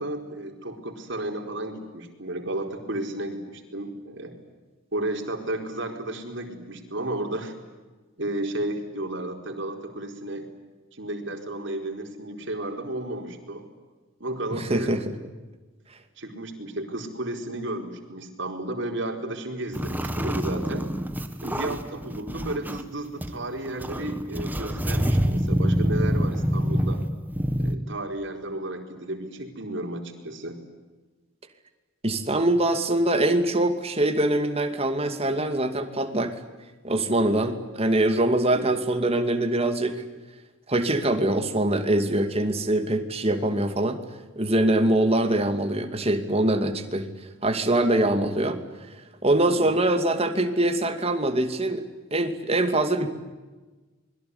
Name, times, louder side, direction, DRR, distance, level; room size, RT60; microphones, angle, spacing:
voice 1, 0.0-4.3 4.9-7.5 8.2-10.5 10.9-13.6 14.2-15.0 16.2-20.9 21.4-27.0 27.6-30.6 38.5-38.6 49.5-49.7, right 1 dB, 60° right, 4 dB, 4.5 m, -33 dB
voice 2, 14.5-15.2 32.0-36.3 36.8-40.0 40.7-44.0 44.4-47.1 47.4-48.6 49.2-51.8 52.1-53.1, right 1 dB, 30° right, 7 dB, 2.5 m, -23 dB
sound 1, 19.7-22.8 23.2-23.3 23.6-27.7, equal, 10° right, 1.5 m, -26 dB
27.0 x 22.0 x 9.7 m, 1.3 s
head